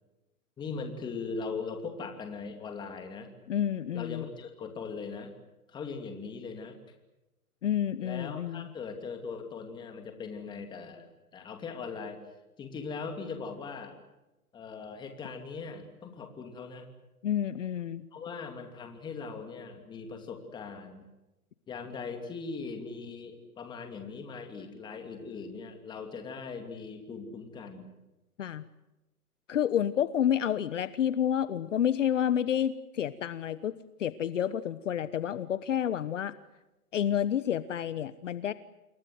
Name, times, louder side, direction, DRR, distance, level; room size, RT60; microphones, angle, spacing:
voice 1, 0.6-3.3 3.9-5.3 5.7-6.8 8.0-12.2 12.6-14.0 14.5-16.9 18.1-21.0 21.7-27.9, left 4 dB, 10° left, 5 dB, 2.8 m, -40 dB
voice 2, 3.5-4.2 7.6-8.7 17.2-18.0 28.4-28.6 29.5-33.7 34.0-36.3 36.9-38.5, left 9 dB, 55° left, 15 dB, 1.2 m, -29 dB
28.0 x 23.0 x 7.9 m, 0.99 s
hypercardioid pair, 165°, 45 cm